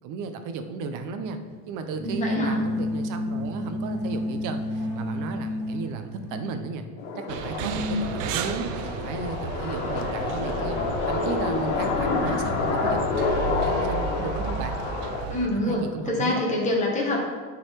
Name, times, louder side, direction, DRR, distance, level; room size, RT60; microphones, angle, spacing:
voice 1, 0.0-1.4 1.7-6.9 7.2-10.8 11.1-14.8 15.5-16.4, right 4 dB, 55° right, 8 dB, 0.8 m, -34 dB
sound 1, 1.9-6.7, left 1 dB, 5° right, 1.3 m, -30 dB
voice 2, 2.0-2.6 7.6-8.0 15.3-15.8 16.1-17.2, left 1 dB, 20° left, -2 dB, 1.6 m, -26 dB
sound 2, 7.0-15.2, left 4 dB, 90° left, 1.4 m, -28 dB
sound 3, 7.3-15.5, right 6 dB, 90° right, 0.7 m, -34 dB
9.3 x 4.1 x 4.6 m, 1.5 s
cardioid pair, 155°, 37 cm